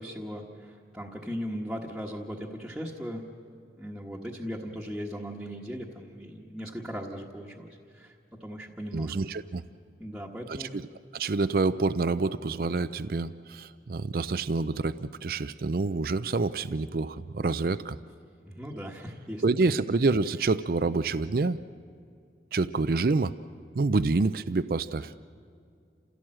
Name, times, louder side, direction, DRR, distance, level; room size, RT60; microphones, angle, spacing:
voice 1, 0.0-3.2 3.8-8.1 8.4-9.1 10.0-10.8 18.4-19.4, equal, 5° right, -4 dB, 1.3 m, -38 dB
voice 2, 8.9-9.6 10.5-10.9 11.1-18.0 19.4-21.6 22.5-23.3 23.8-25.1, right 3 dB, 55° right, 13 dB, 0.5 m, -27 dB
29.0 x 16.0 x 7.6 m, 2.4 s
head